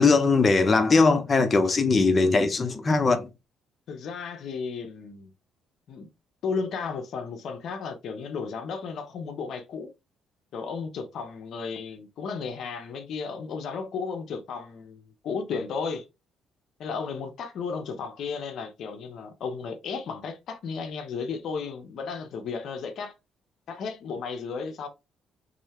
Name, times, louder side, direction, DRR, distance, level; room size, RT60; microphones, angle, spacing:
voice 1, 0.0-3.3, left 3 dB, 30° left, 1.0 m, -20 dB
voice 2, 3.9-5.3 5.9-6.1 6.4-9.9 10.5-16.0 16.8-23.1 23.7-24.9, left 5 dB, 65° left, 0.9 m, -34 dB
5.3 x 3.2 x 3.1 m
cardioid pair, 85°, 0 cm